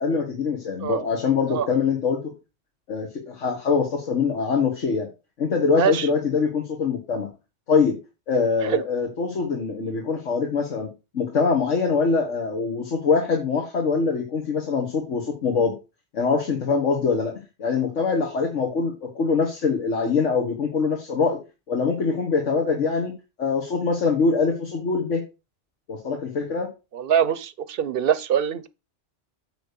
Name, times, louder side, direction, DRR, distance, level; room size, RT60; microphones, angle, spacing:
voice 1, 0.0-2.3 2.9-5.1 5.4-7.3 7.7-8.0 8.3-10.9 11.1-15.7 16.1-21.4 21.7-23.1 23.4-25.2 25.9-26.7, left 5 dB, 80° left, 1.8 m, -23 dB
voice 2, 5.7-6.1 8.6-8.8 26.9-28.7, right 9 dB, 55° right, 0.8 m, -23 dB
9.0 x 3.3 x 6.7 m
omnidirectional pair, 1.2 m